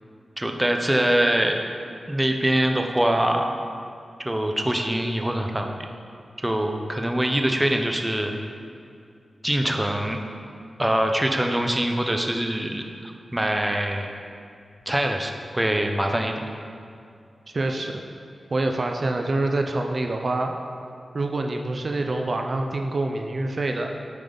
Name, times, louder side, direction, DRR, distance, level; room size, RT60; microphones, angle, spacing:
voice 1, 0.4-1.6 2.1-3.5 4.2-5.8 6.4-8.3 9.4-10.2 10.8-14.1 14.9-16.5, right 1 dB, 15° right, 4 dB, 0.7 m, -24 dB
voice 2, 17.5-18.0 18.5-20.5 21.1-23.9, right 2 dB, 55° right, 3 dB, 0.5 m, -26 dB
8.9 x 5.3 x 3.9 m, 2.5 s
wide cardioid pair, 70°, 0 cm